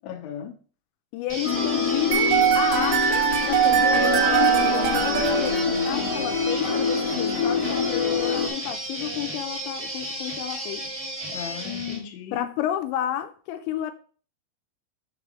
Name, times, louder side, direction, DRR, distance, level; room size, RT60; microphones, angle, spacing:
voice 1, 0.0-0.5 11.3-12.5, left 9 dB, 70° left, 2.4 m, -37 dB
voice 2, 1.1-10.8 12.3-13.9, left 11 dB, 85° left, 2.9 m, -31 dB
sound 1, 1.3-12.0, right 1 dB, 15° right, 1.3 m, -33 dB
sound 2, 1.4-8.5, left 5 dB, 50° left, 2.2 m, -26 dB
sound 3, 2.1-6.2, right 9 dB, 80° right, 2.9 m, -22 dB
6.5 x 3.4 x 6.1 m
omnidirectional pair, 5.2 m